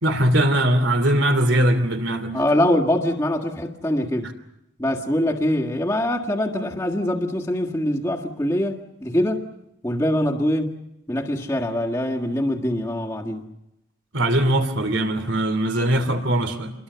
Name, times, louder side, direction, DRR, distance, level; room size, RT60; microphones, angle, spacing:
voice 1, 0.0-2.4 14.1-16.7, right 1 dB, 70° right, 2.9 m, -20 dB
voice 2, 2.3-4.3 4.8-9.5 9.8-10.7 11.1-13.5, left 1 dB, 15° left, 1.7 m, -23 dB
27.5 x 22.0 x 6.8 m
head